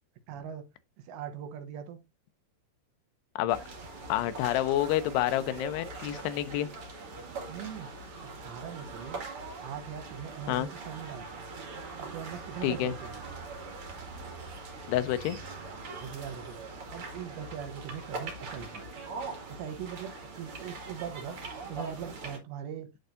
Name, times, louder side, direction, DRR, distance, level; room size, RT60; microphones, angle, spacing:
voice 1, 0.3-0.7 1.0-2.0 7.5-7.9 8.2-9.2 9.6-11.5 12.0-13.1 16.0-18.8 19.5-21.4 21.7-22.9, right 9 dB, 80° right, 3.3 m, -41 dB
sound 1, 3.5-22.4, right 3 dB, 40° right, 2.3 m, -42 dB
voice 2, 4.1-6.7 10.5-10.7 12.6-12.9 14.9-15.4, left 13 dB, 80° left, 2.7 m, -28 dB
11.0 x 4.6 x 2.6 m
omnidirectional pair, 4.9 m